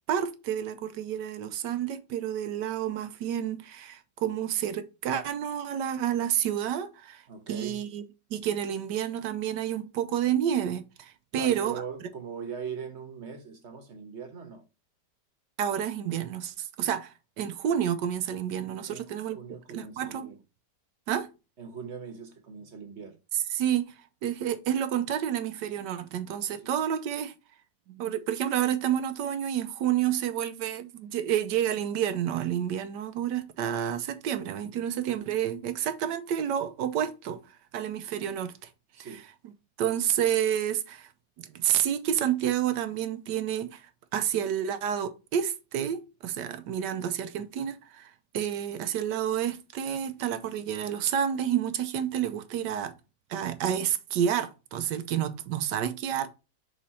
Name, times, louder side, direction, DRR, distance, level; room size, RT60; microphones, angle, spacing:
voice 1, 0.1-7.2 7.5-8.0 8.3-11.8 15.6-19.4 19.7-20.3 21.1-21.3 23.3-23.9 24.2-27.3 27.9-38.5 39.0-39.1 39.8-41.1 41.4-52.9 53.3-56.4, right 10 dB, 90° right, 1.3 m, -29 dB
voice 2, 7.3-7.8 11.3-14.6 18.9-20.3 21.6-23.2 26.5-26.7 38.9-39.2, right 6 dB, 45° right, 1.2 m, -40 dB
6.3 x 4.0 x 4.1 m
omnidirectional pair, 1.8 m